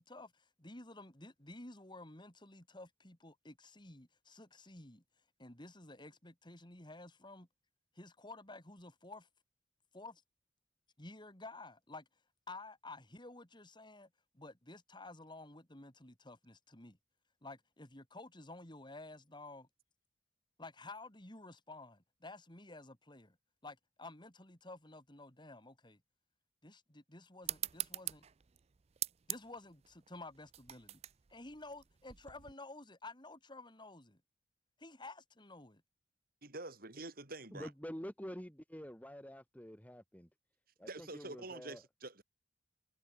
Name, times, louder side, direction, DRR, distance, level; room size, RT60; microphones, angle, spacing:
voice 1, 0.0-5.0 5.4-7.5 8.0-9.3 9.9-10.2 11.0-12.1 12.5-14.1 14.3-17.0 17.4-19.7 20.6-23.4 23.6-26.0 26.6-28.2 29.3-31.0 31.3-34.2 34.8-35.8, left 2 dB, 25° left, 3.7 m, -52 dB
sound 1, 27.4-32.5, right 13 dB, 35° right, 0.4 m, -44 dB
voice 2, 36.4-37.7 40.8-42.2, right 2 dB, 55° right, 5.0 m, -47 dB
voice 3, 37.5-40.3 40.8-41.8, equal, 10° left, 3.8 m, -47 dB
head